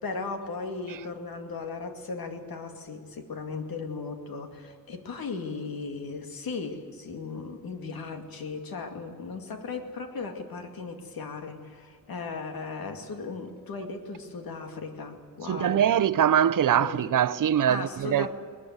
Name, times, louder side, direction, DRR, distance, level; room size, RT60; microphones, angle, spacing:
voice 1, 0.0-15.8 16.7-17.1 17.7-18.3, left 4 dB, 80° left, 2.4 m, -37 dB
voice 2, 15.5-18.3, right 9 dB, 65° right, 0.7 m, -23 dB
20.5 x 19.5 x 8.1 m
wide cardioid pair, 175°, 35 cm